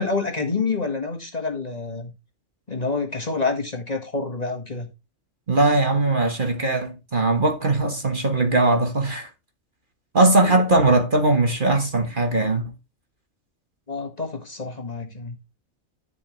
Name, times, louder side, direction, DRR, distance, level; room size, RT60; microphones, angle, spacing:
voice 1, 0.0-2.1 2.7-4.9 10.4-10.6 13.9-15.4, left 4 dB, 30° left, 1.8 m, -27 dB
voice 2, 5.5-9.3 10.1-12.6, right 2 dB, 40° right, 1.4 m, -20 dB
10.5 x 7.2 x 3.2 m
omnidirectional pair, 1.4 m